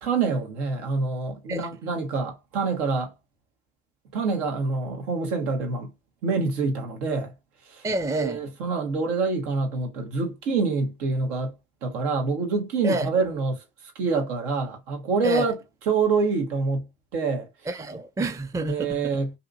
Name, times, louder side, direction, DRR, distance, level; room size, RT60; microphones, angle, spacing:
voice 1, 0.0-3.1 4.1-5.9 6.2-7.3 7.7-7.8 8.1-11.5 11.8-13.6 13.9-15.6 15.9-16.9 17.1-17.5 18.7-19.3, right 4 dB, 75° right, 1.0 m, -26 dB
voice 2, 7.8-8.4 12.8-13.1 15.2-15.5 17.7-19.2, right 1 dB, 5° right, 0.4 m, -28 dB
2.7 x 2.6 x 2.4 m
figure-of-eight pair, 50°, 46 cm